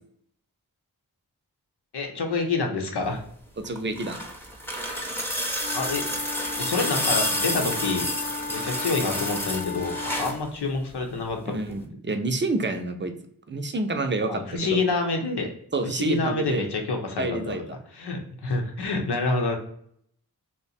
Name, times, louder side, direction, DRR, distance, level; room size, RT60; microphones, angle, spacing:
voice 1, 1.9-3.2 5.7-6.1 6.6-8.1 8.5-11.6 14.3-15.5 15.8-17.6 17.9-19.6, left 3 dB, 80° left, 2 dB, 0.8 m, -27 dB
sound 1, 3.6-10.4 11.7-11.8, equal, 5° left, 0.8 m, -29 dB
voice 2, 3.6-4.3 11.5-13.1 13.5-14.8 15.7-16.7 17.2-17.6, right 2 dB, 30° right, 6 dB, 0.5 m, -28 dB
Wind instrument woodwind instrument, 5.6-10.4, left 4 dB, 25° left, 0.4 m, -35 dB
2.7 x 2.1 x 4.1 m, 0.66 s
cardioid pair, 40°, 39 cm